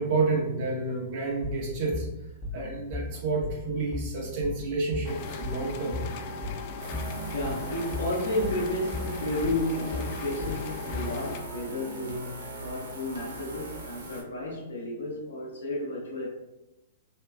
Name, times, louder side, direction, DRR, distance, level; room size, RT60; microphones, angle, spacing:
voice 1, 0.0-2.1 2.5-6.0, right 3 dB, 50° right, 1.1 m, -29 dB
sound 1, 1.4-11.2, left 3 dB, 25° left, 0.8 m, -36 dB
sound 2, 5.0-11.4, left 4 dB, 50° left, 0.3 m, -39 dB
sound 3, 6.8-14.2, right 2 dB, 70° right, 0.9 m, -40 dB
voice 2, 7.3-16.3, left 1 dB, 75° left, 0.8 m, -32 dB
4.2 x 2.2 x 2.5 m
hypercardioid pair, 115°, 0 cm